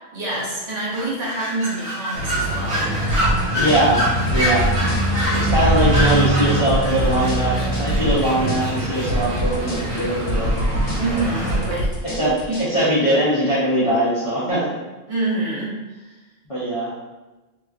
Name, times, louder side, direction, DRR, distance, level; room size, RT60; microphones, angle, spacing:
voice 1, 0.1-3.0 11.0-11.9 12.5-12.6 15.1-16.1, right 2 dB, 90° right, -8 dB, 1.4 m, -26 dB
sound 1, 0.9-11.6, equal, 30° right, 0.9 m, -28 dB
sound 2, 2.1-11.8, right 1 dB, 70° right, 0.9 m, -24 dB
sound 3, 3.1-12.7, equal, 70° left, 1.1 m, -25 dB
voice 2, 3.5-4.7 5.3-10.6 12.0-14.7 16.5-16.9, right 1 dB, 35° left, -11 dB, 0.7 m, -21 dB
2.9 x 2.9 x 2.4 m, 1.1 s
omnidirectional pair, 1.2 m